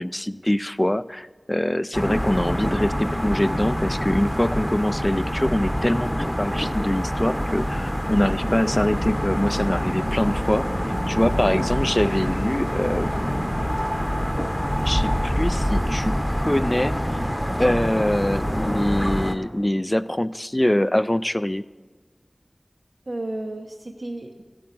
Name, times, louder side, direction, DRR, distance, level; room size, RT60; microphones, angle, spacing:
voice 1, 0.0-6.1 6.4-10.7 11.1-13.8 14.8-17.2 17.6-21.6, left 1 dB, 20° left, 16 dB, 0.3 m, -24 dB
sound 1, 1.9-19.4, equal, 5° left, 0.8 m, -25 dB
voice 2, 11.4-11.7 23.1-24.4, right 2 dB, 70° right, 0 dB, 0.9 m, -33 dB
15.5 x 8.5 x 3.9 m, 1.3 s
wide cardioid pair, 55°, 0 cm